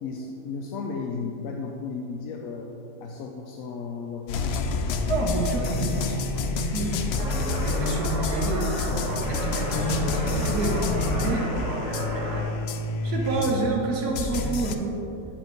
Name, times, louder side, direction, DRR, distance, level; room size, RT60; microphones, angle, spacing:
voice 1, 0.0-2.7 3.0-4.9, left 4 dB, 65° left, 1 dB, 0.9 m, -34 dB
sound 1, 4.3-13.8 14.1-14.8, left 3 dB, 85° left, 0.5 m, -28 dB
voice 2, 5.1-8.6 9.3-11.5 13.0-15.0, right 2 dB, 75° right, -1 dB, 1.4 m, -28 dB
sound 2, 7.2-12.4, right 1 dB, 45° right, 2.1 m, -33 dB
9.8 x 5.3 x 4.5 m, 2.9 s
omnidirectional pair, 1.7 m